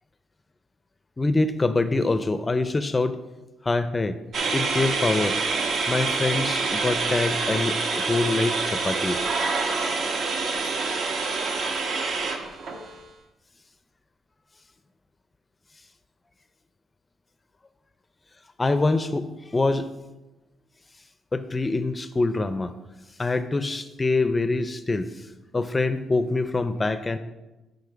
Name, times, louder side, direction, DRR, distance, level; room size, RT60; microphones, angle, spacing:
voice 1, 1.2-3.2 3.6-4.2 4.5-5.4 5.9-9.2 18.6-19.9 21.3-22.7 23.2-25.3 25.5-27.2, left 3 dB, 25° left, 11 dB, 0.4 m, -25 dB
sound 1, 4.3-12.9, right 4 dB, 65° right, 1.0 m, -26 dB
10.0 x 4.0 x 4.9 m, 1.1 s
cardioid pair, 90°, 0 cm